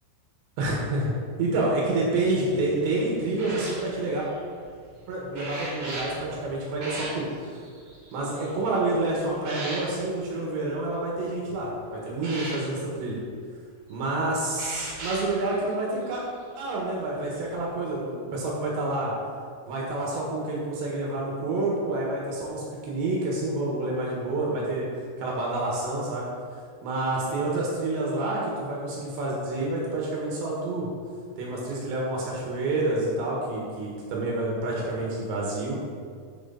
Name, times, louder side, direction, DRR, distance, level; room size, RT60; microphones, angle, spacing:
voice 1, 0.6-1.1 1.4-4.3 5.1-7.3 8.1-13.2 13.9-16.2 16.6-19.1 19.7-26.3 26.8-30.9 31.4-35.8, right 2 dB, 65° right, -3 dB, 3.5 m, -28 dB
sound 1, 2.4-10.8 11.2-11.6 12.1-12.6 13.9-14.0 14.5-15.3 16.2-16.4 17.4-17.6, right 1 dB, 30° right, 2.4 m, -39 dB
13.0 x 6.6 x 4.1 m, 2.1 s
omnidirectional pair, 6.0 m